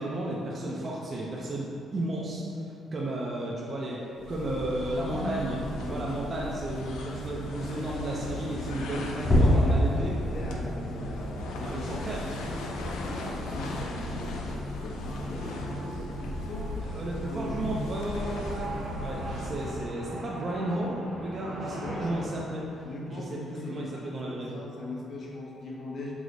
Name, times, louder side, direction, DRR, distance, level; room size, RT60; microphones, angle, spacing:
voice 1, 0.0-10.1 11.6-12.2 14.5-14.7 16.8-18.7 19.0-24.6, right 1 dB, 40° right, -4 dB, 0.5 m, -33 dB
sound 1, 4.2-20.0, left 1 dB, 90° left, 0.4 m, -37 dB
voice 2, 4.9-5.4 5.8-6.4 8.8-11.9 12.2-12.5 13.1-16.7 17.2-17.8 21.8-22.1 22.8-26.1, left 1 dB, 55° left, -3 dB, 0.8 m, -40 dB
sound 2, 9.2-15.9 16.2-16.5 16.9-17.1 17.6-17.8, left 1 dB, 25° left, 0.7 m, -29 dB
sound 3, 13.1-22.3, right 2 dB, 80° right, 0.7 m, -42 dB
4.7 x 2.0 x 3.8 m, 2.7 s
cardioid pair, 90°, 0 cm